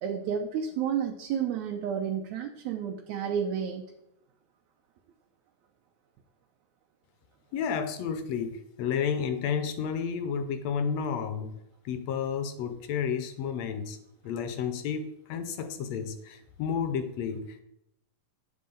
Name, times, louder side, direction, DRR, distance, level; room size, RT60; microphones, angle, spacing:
voice 1, 0.0-3.8, right 8 dB, 75° right, 2 dB, 2.0 m, -31 dB
voice 2, 7.5-11.5 11.8-14.0 14.2-17.6, left 7 dB, 75° left, 9 dB, 1.6 m, -31 dB
9.3 x 7.8 x 3.8 m, 0.79 s
omnidirectional pair, 3.7 m